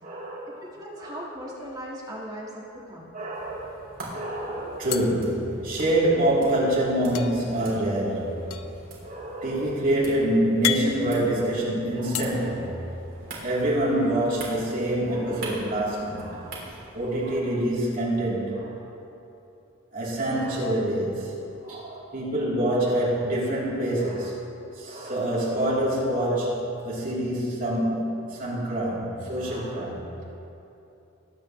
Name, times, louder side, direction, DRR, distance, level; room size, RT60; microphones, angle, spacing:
voice 1, 0.0-0.5 0.9-1.2 3.1-3.7 4.1-8.5 9.0-12.8 13.4-16.5 16.9-18.8 19.9-21.3 21.6-24.4 24.7-30.0, right 1 dB, 40° right, -7 dB, 3.1 m, -26 dB
voice 2, 0.6-3.1, equal, 15° right, -4 dB, 1.6 m, -38 dB
sound 1, 1.6-2.5 2.8-3.0 3.2-4.0 4.9-6.2 7.1-12.2, left 10 dB, 75° left, 0.5 m, -34 dB
sound 2, 3.3-17.3, right 2 dB, 65° right, 3.1 m, -44 dB
21.0 x 8.8 x 3.1 m, 2.8 s
head